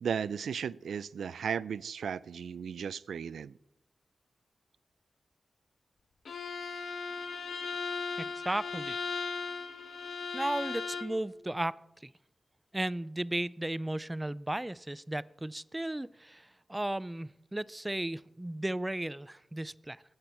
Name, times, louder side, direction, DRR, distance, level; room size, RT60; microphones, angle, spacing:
voice 1, 0.0-3.5, right 7 dB, 90° right, 19 dB, 0.3 m, -35 dB
Bowed string instrument, 6.3-11.2, left 4 dB, 75° left, 1.2 m, -37 dB
voice 2, 8.2-9.0 10.3-12.1 12.7-20.0, right 1 dB, 15° right, 19 dB, 0.4 m, -35 dB
20.5 x 8.0 x 4.4 m, 0.87 s
cardioid pair, 75°, 0 cm